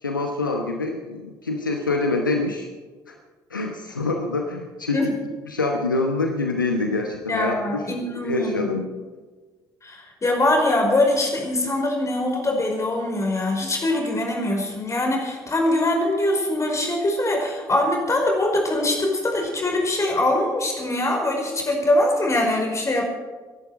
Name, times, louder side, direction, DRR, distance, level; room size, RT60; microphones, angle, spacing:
voice 1, 0.0-2.7 3.1-3.2 3.5-5.0 5.5-7.8 8.2-8.9, left 3 dB, 85° left, 3 dB, 0.9 m, -25 dB
voice 2, 7.3-8.7 9.8-23.0, left 1 dB, 30° left, 1 dB, 5.1 m, -23 dB
23.5 x 11.5 x 4.9 m, 1.4 s
figure-of-eight pair, 45°, 10 cm